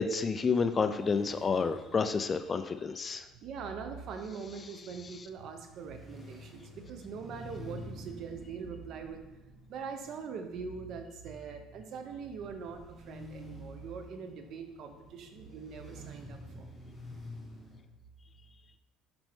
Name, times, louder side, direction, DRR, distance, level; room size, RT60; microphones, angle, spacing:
voice 1, 0.0-3.2, left 5 dB, 25° left, 10 dB, 0.3 m, -29 dB
sound 1, 0.6-17.8, left 1 dB, ahead, 1.2 m, -50 dB
voice 2, 3.4-9.2 9.7-16.7, right 5 dB, 50° right, 6 dB, 0.8 m, -42 dB
5.9 x 5.4 x 3.5 m, 1.0 s
cardioid pair, 145°, 0 cm